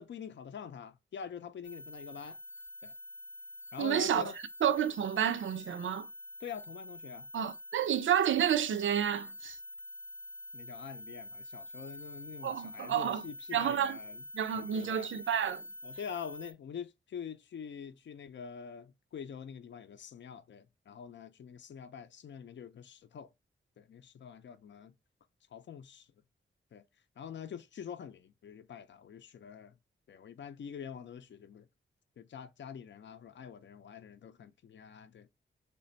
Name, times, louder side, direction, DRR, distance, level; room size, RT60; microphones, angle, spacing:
voice 1, 0.0-2.4 2.8-2.9 3.7-4.4 6.4-7.3 10.5-14.2 14.7-15.1 15.8-23.3 23.8-24.9 25.5-26.1 26.7-26.8 27.2-29.7 30.1-31.7 32.2-35.3, left 7 dB, 65° left, 0.5 m, -45 dB
sound 1, 1.6-16.5, left 1 dB, 10° left, 0.6 m, -47 dB
voice 2, 3.8-4.3 4.6-6.1 7.3-9.6 12.4-13.3 13.5-14.0 14.3-15.6, right 9 dB, 70° right, 0.4 m, -30 dB
3.2 x 2.2 x 3.9 m
cardioid pair, 75°, 21 cm